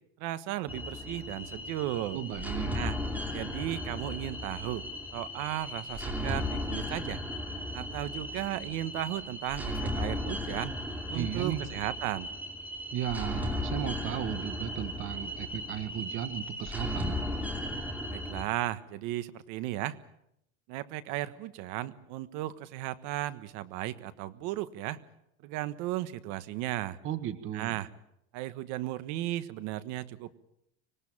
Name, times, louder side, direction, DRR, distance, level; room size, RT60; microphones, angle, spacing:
voice 1, 0.2-2.2 2.7-3.0 3.3-4.8 5.1-7.2 7.7-10.7 11.1-12.3 18.1-20.0 20.7-25.0 25.4-27.0 27.5-27.9 28.3-30.3, right 14 dB, 50° right, 13 dB, 1.5 m, -35 dB
sound 1, 0.7-18.4, left 1 dB, 5° right, 2.7 m, -36 dB
voice 2, 2.1-2.8 11.1-11.7 12.9-17.2 27.0-27.8, right 10 dB, 35° right, 10 dB, 1.6 m, -35 dB
25.5 x 19.0 x 8.8 m, 0.79 s
cardioid pair, 165°, 36 cm